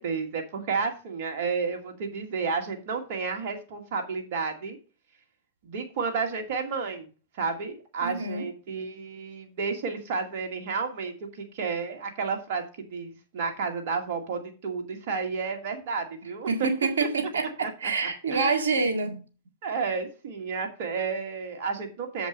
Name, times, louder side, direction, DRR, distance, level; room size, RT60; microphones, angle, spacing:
voice 1, 0.0-4.8 5.6-7.1 7.3-12.6 12.9-16.5 17.6-18.6 19.6-22.3, right 5 dB, 60° right, 2.3 m, -31 dB
voice 2, 8.0-8.4 16.5-19.2, right 4 dB, 80° right, 1.9 m, -27 dB
7.6 x 5.2 x 6.3 m
hypercardioid pair, 105°, 0 cm